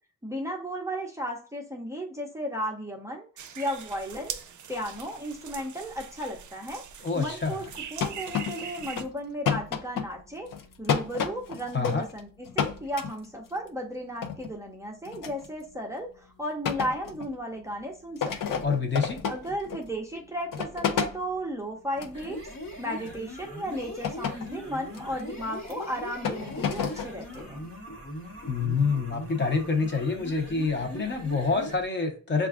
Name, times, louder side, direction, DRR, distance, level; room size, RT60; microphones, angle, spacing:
voice 1, 0.2-3.3 3.6-4.4 4.7-6.8 7.2-7.6 7.9-10.5 10.8-18.8 19.3-22.4 22.8-27.7, equal, 10° right, 0 dB, 0.5 m, -34 dB
sound 1, 3.4-9.0, right 8 dB, 60° right, 0.5 m, -42 dB
voice 2, 7.0-7.6 11.7-12.0 18.6-19.2 28.5-32.5, left 4 dB, 35° left, 3 dB, 0.8 m, -27 dB
sound 2, 7.6-9.1 9.5-12.2 12.5-13.5 14.2-14.5 15.1-15.5 16.7-17.3 17.7-17.8 18.2-19.9 20.5-21.2 22.0-22.2 23.0-23.2 24.0-24.6 24.9-25.2 25.6-25.7 26.3-27.4, left 7 dB, 75° left, 0.6 m, -31 dB
sound 3, 22.0-31.8, equal, 55° left, 1.2 m, -40 dB
6.7 x 2.4 x 2.4 m, 0.40 s
wide cardioid pair, 150°, 33 cm